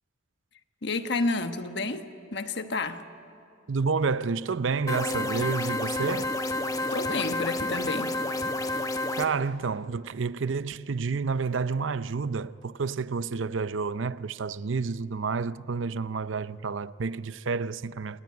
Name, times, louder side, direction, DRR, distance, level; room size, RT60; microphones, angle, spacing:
voice 1, 0.8-2.1 2.3-3.0 6.9-8.1, left 3 dB, 60° left, 1.2 m, -30 dB
voice 2, 3.7-6.4 9.2-18.2, right 4 dB, 80° right, 0.6 m, -29 dB
sound 1, 4.9-9.3, left 2 dB, 20° left, 1.1 m, -30 dB
27.5 x 20.0 x 9.7 m
head